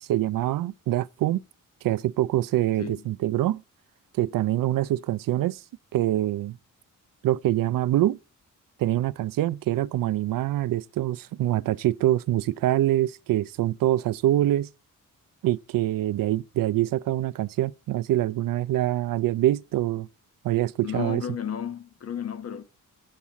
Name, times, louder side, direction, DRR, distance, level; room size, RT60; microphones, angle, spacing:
voice 1, 0.1-1.4 1.8-3.6 4.1-5.6 5.9-6.6 7.2-8.2 8.8-14.7 15.4-20.1 20.4-21.2, right 14 dB, 80° right, 0.5 m, -25 dB
voice 2, 2.8-3.1 20.8-22.6, left 8 dB, 45° left, 1.1 m, -33 dB
7.5 x 7.2 x 8.2 m
wide cardioid pair, 175°, 33 cm